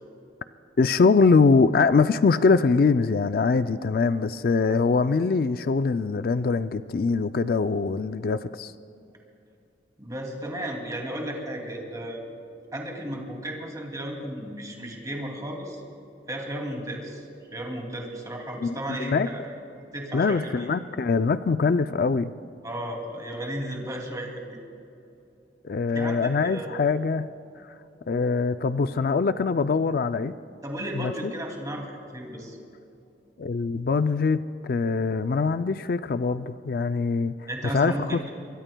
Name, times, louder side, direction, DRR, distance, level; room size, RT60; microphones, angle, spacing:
voice 1, 0.8-8.7 18.6-19.3 20.1-22.3 25.6-27.3 28.1-30.3 30.9-31.3 33.4-38.3, left 4 dB, 55° left, 11 dB, 0.4 m, -23 dB
voice 2, 10.0-12.2 12.7-15.8 16.3-19.4 19.9-20.7 22.6-24.6 25.9-26.7 30.6-32.6 37.5-38.3, right 1 dB, 20° right, 1 dB, 2.5 m, -34 dB
25.0 x 23.0 x 2.3 m, 2.8 s
head